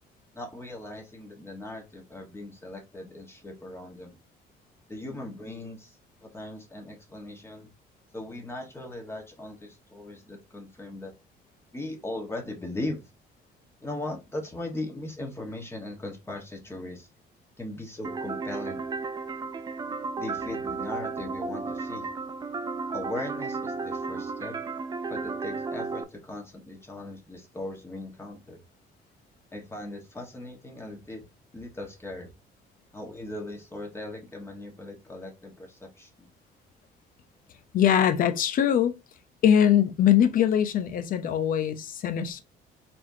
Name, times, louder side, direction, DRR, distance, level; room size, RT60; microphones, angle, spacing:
voice 1, 0.3-4.2 4.9-7.7 8.1-11.1 11.7-13.1 13.8-17.1 17.6-18.9 20.2-22.1 22.9-24.5 25.1-28.6 29.5-31.2 31.5-32.3 32.9-36.3, left 2 dB, 15° left, 1.3 m, -39 dB
sound 1, 18.0-26.0, right 4 dB, 25° right, 0.4 m, -33 dB
voice 2, 37.7-39.0 39.4-42.4, left 9 dB, 55° left, 0.7 m, -22 dB
4.3 x 3.5 x 2.7 m
cardioid pair, 110°, 17 cm